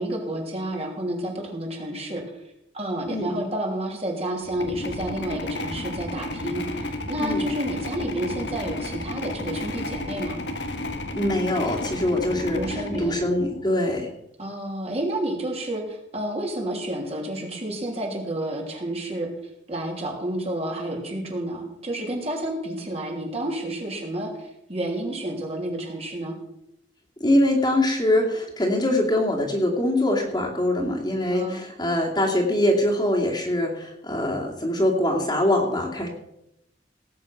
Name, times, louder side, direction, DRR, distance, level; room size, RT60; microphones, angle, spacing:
voice 1, 0.0-2.2 2.7-10.4 12.5-13.2 14.4-19.3 19.7-26.3 31.3-31.6, right 1 dB, 35° right, 0 dB, 3.1 m, -30 dB
sound 1, 4.5-13.8, left 2 dB, 80° left, 1.5 m, -32 dB
voice 2, 11.1-14.1 27.2-36.1, left 1 dB, 25° left, 0 dB, 2.5 m, -23 dB
18.0 x 8.6 x 5.9 m, 0.82 s
head